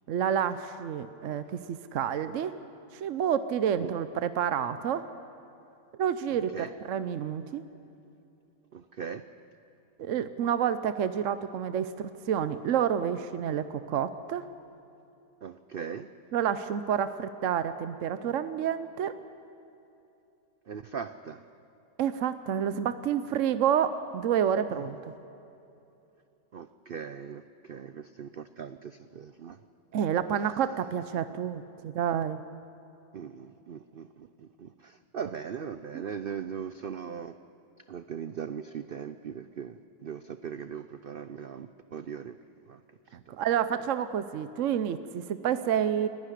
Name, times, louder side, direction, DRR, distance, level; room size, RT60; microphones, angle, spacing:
voice 1, 0.1-2.6 2.9-5.1 6.0-7.6 10.0-14.5 16.3-19.2 22.0-25.0 29.9-32.4 35.9-36.0 43.3-46.1, right 9 dB, 60° right, 12 dB, 0.9 m, -29 dB
voice 2, 8.7-9.2 15.4-16.1 20.7-21.4 24.7-24.8 26.5-29.6 33.1-37.4 37.9-42.4 42.7-42.8 43.3-43.4, right 7 dB, 90° right, 11 dB, 0.4 m, -39 dB
29.0 x 11.5 x 9.9 m, 2.8 s
omnidirectional pair, 1.7 m